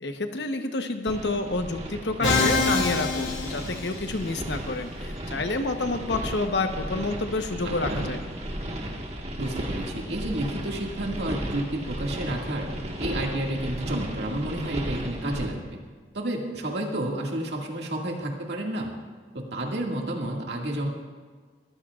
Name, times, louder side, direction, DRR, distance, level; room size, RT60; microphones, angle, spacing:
voice 1, 0.0-8.2, left 2 dB, 70° left, 6 dB, 1.1 m, -29 dB
sound 1, 1.1-15.5, right 1 dB, 35° right, 1.6 m, -35 dB
Musical instrument, 2.2-4.3, left 3 dB, 90° left, 2.2 m, -25 dB
voice 2, 7.6-8.1 9.4-12.7 13.0-15.8 16.1-18.9 19.3-20.9, right 1 dB, 70° right, -1 dB, 2.2 m, -30 dB
22.0 x 14.5 x 2.5 m, 1.5 s
head